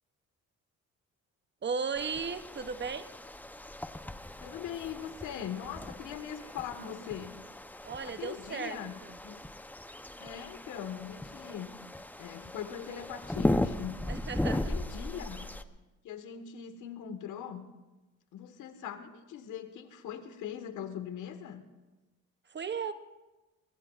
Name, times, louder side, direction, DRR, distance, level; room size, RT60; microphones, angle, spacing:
voice 1, 1.6-3.1 7.8-9.1 14.1-14.6 22.5-22.9, right 5 dB, 35° right, 11 dB, 0.7 m, -35 dB
sound 1, 2.0-15.6, left 1 dB, 5° left, 0.7 m, -37 dB
voice 2, 4.4-7.4 8.0-9.4 10.2-11.7 12.2-14.1 14.5-15.5 16.0-17.7 18.3-21.6, left 9 dB, 85° left, 8 dB, 1.5 m, -41 dB
22.5 x 20.5 x 2.4 m, 1.1 s
cardioid pair, 90°, 30 cm